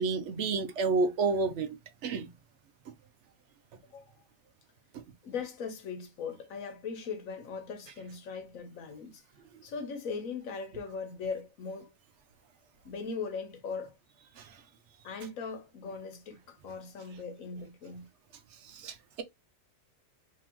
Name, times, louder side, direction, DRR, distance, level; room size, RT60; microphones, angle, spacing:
voice 1, 0.0-1.8 2.0-2.3 14.4-14.6 18.6-19.2, right 4 dB, 65° right, 0.9 m, -30 dB
voice 2, 5.2-9.2 9.6-12.0 12.8-14.0 15.0-18.1, left 5 dB, 85° left, 1.3 m, -39 dB
3.6 x 2.8 x 2.9 m
omnidirectional pair, 1.4 m